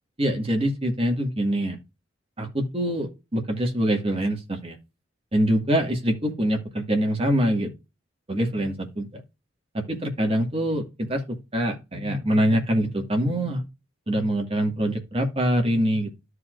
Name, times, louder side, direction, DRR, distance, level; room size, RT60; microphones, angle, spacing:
voice 1, 0.2-1.8 2.4-4.8 5.3-7.7 8.3-9.1 9.7-13.6 14.1-16.1, equal, 30° right, 2.0 m, -24 dB
13.0 x 4.8 x 2.5 m
head